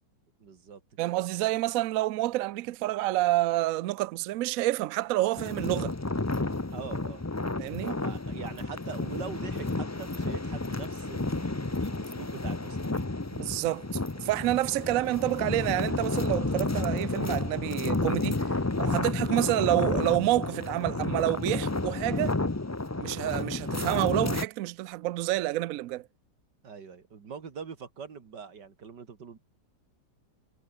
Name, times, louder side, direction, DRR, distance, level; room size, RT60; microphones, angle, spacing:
voice 1, 0.4-0.8 6.7-7.3 7.9-13.1 23.0-23.3 26.6-29.4, right 6 dB, 85° right, 2.8 m, -43 dB
voice 2, 1.0-5.9 7.6-7.9 13.3-13.9 14.2-22.4 23.0-26.1, right 16 dB, 70° right, 0.8 m, -28 dB
sound 1, 5.4-24.5, left 2 dB, 20° left, 0.4 m, -31 dB
omnidirectional pair, 1.8 m